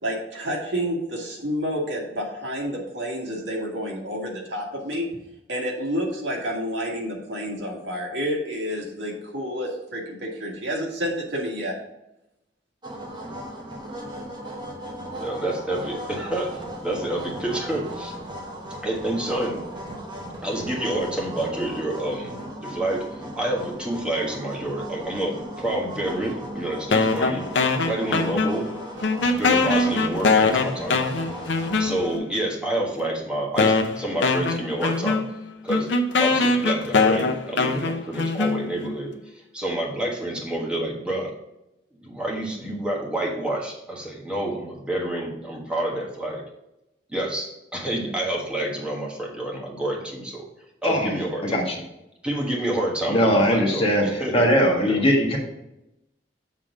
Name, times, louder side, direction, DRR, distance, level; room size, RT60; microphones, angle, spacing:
voice 1, 0.0-5.1 5.5-11.8, equal, 80° right, -1 dB, 1.8 m, -29 dB
sound 1, 12.8-32.2, equal, 25° right, 1.2 m, -37 dB
voice 2, 15.2-18.1 18.8-19.6 20.4-27.5 27.8-28.7 29.4-31.0 31.8-35.2 35.6-35.9 36.2-41.3 42.0-46.4 47.1-50.5 50.8-51.6 52.2-54.5 54.8-55.0, right 1 dB, 5° right, -2 dB, 1.4 m, -28 dB
sound 2, 26.9-28.8 29.0-32.3 33.0-33.1 33.6-39.0, left 3 dB, 70° left, 0.6 m, -22 dB
voice 3, 51.4-51.8 53.1-55.4, equal, 30° left, 0 dB, 1.4 m, -20 dB
7.5 x 3.7 x 4.9 m, 0.90 s
head